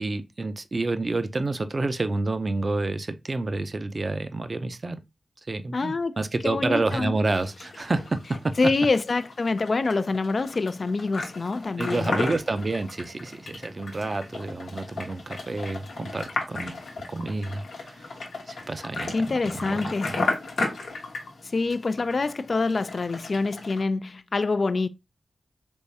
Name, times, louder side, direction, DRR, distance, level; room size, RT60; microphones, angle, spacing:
voice 1, 0.0-5.0 5.5-8.5 11.8-16.8 17.1-18.1 18.5-20.2, right 2 dB, 50° right, 0.5 m, -29 dB
voice 2, 5.7-6.1 6.4-7.1 8.6-12.1 19.1-20.1 21.4-24.9, left 3 dB, 60° left, 0.3 m, -26 dB
sound 1, 7.4-23.8, left 3 dB, 90° left, 0.9 m, -35 dB
3.6 x 3.0 x 2.7 m
cardioid pair, 45°, 0 cm